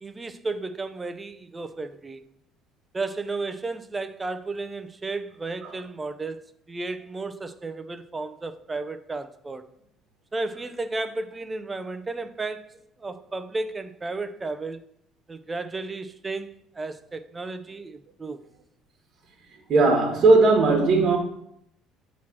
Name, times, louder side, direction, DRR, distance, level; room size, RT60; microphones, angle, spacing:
voice 1, 0.0-2.2 2.9-9.6 10.3-12.7 13.0-14.8 15.3-18.4, right 3 dB, 20° right, 0.5 m, -33 dB
voice 2, 19.7-21.2, right 3 dB, 50° right, 1.3 m, -18 dB
7.1 x 3.1 x 6.0 m
cardioid pair, 100°, 0 cm